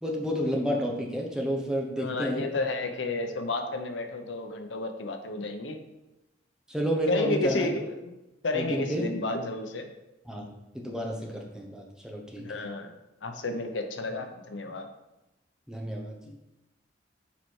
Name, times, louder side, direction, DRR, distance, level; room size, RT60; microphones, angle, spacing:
voice 1, 0.0-2.4 6.7-7.7 8.5-9.1 10.3-12.6 15.7-16.2, equal, 5° right, -1 dB, 1.0 m, -31 dB
voice 2, 2.0-5.8 7.1-8.0 8.4-9.9 12.4-12.9 13.2-14.9, left 2 dB, 85° left, 6 dB, 0.8 m, -31 dB
7.1 x 4.5 x 4.6 m, 0.97 s
head